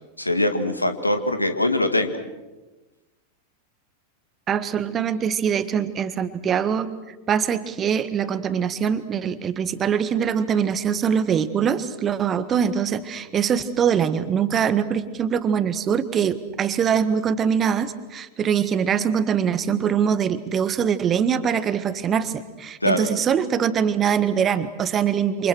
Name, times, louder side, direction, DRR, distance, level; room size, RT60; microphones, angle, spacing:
voice 1, 0.2-2.1 22.8-23.1, left 1 dB, 85° left, 8 dB, 2.3 m, -22 dB
voice 2, 4.5-6.9 7.3-25.5, right 7 dB, 25° right, 13 dB, 1.6 m, -23 dB
28.5 x 27.5 x 6.3 m, 1.1 s
figure-of-eight pair, 90°, 0 cm